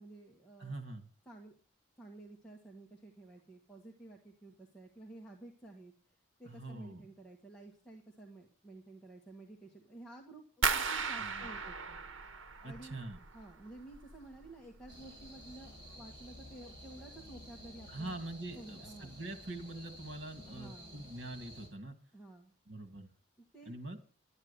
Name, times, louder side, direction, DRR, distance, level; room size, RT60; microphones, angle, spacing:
voice 1, 0.0-0.7 1.3-1.5 2.0-5.9 6.4-12.0 12.6-13.0 13.3-18.2 18.5-19.1 20.5-21.0 22.1-22.5 23.5-23.7, right 2 dB, 5° left, -3 dB, 1.8 m, -52 dB
voice 2, 0.6-1.1 6.4-7.0 11.2-11.5 12.6-13.2 17.9-22.0 22.7-23.1 23.7-24.0, right 2 dB, 60° right, 7 dB, 2.3 m, -44 dB
sound 1, 10.6-13.5 13.8-14.5 14.8-15.3 15.7-15.8, right 5 dB, 80° right, 1.1 m, -36 dB
sound 2, 14.9-21.7, equal, 25° right, 6.9 m, -52 dB
12.0 x 9.6 x 6.9 m, 0.41 s
head